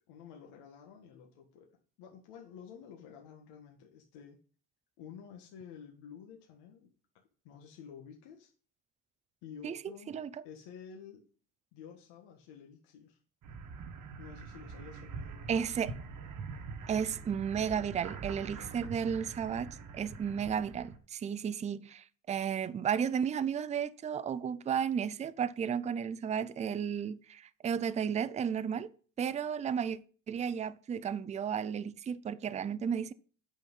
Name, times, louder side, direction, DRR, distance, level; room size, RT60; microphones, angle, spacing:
voice 1, 0.1-1.7 2.0-4.4 5.0-6.9 7.4-8.5 9.4-11.3 11.7-13.2 14.2-15.7, left 7 dB, 80° left, 1.7 m, -51 dB
sound 1, 13.4-21.0, right 5 dB, 50° right, 1.4 m, -44 dB
voice 2, 15.5-16.0 16.9-28.9 29.2-30.0 30.3-33.1, right 7 dB, 20° right, 0.4 m, -33 dB
9.1 x 5.9 x 5.4 m
cardioid pair, 115°, 40 cm